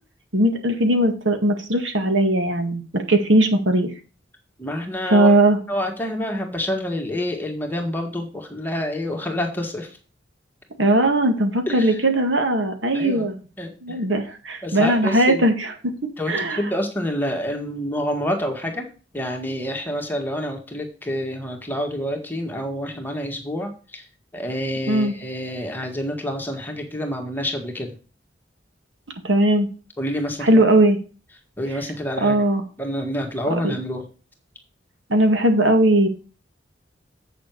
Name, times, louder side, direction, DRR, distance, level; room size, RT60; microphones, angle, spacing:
voice 1, 0.3-3.9 5.1-5.6 10.8-13.4 13.8-15.9 16.3-16.6 24.9-25.1 29.2-29.7 30.4-31.0 32.2-32.6 33.5-33.7 35.1-36.1, right 1 dB, 80° right, 5 dB, 1.9 m, -19 dB
voice 2, 4.6-5.3 5.7-10.0 11.7-12.0 12.9-13.3 13.6-14.0 14.6-15.4 16.2-18.9 19.1-24.0 24.3-27.9 30.0-30.7 31.6-32.4 32.8-34.1, equal, 10° left, 2 dB, 1.8 m, -28 dB
8.0 x 6.8 x 4.8 m, 0.35 s
head